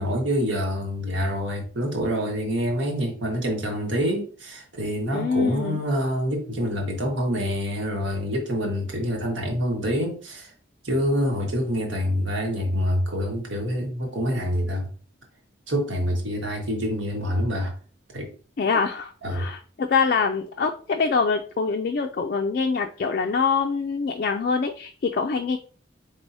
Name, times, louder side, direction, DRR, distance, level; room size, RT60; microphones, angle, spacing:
voice 1, 0.0-10.5 10.8-14.9 15.7-17.7 18.1-18.3 19.2-19.5, equal, 70° right, 1.4 m, -26 dB
voice 2, 5.1-5.8 18.6-25.6, left 5 dB, 50° left, 0.3 m, -24 dB
4.7 x 3.6 x 2.6 m
head